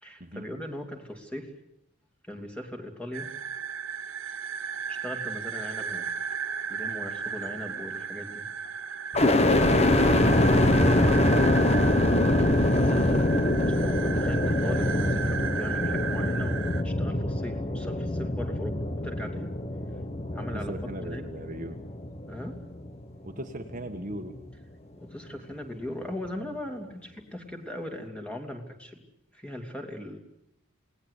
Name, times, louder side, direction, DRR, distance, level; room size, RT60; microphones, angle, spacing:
voice 1, 0.0-1.5 2.2-3.3 4.9-6.0 6.7-8.4 9.9-10.1 12.4-19.5 20.3-20.7 21.0-21.3 22.3-22.6 25.0-29.0 29.3-30.2, left 1 dB, 5° left, 4 dB, 2.8 m, -39 dB
sound 1, 3.1-16.8, right 6 dB, 65° right, 1.5 m, -35 dB
sound 2, 9.1-23.1 23.7-24.4, left 1 dB, 30° left, 1.3 m, -24 dB
voice 2, 20.5-21.8 23.2-24.3, right 1 dB, 40° right, 4 dB, 1.6 m, -38 dB
28.0 x 19.0 x 8.3 m, 0.79 s
head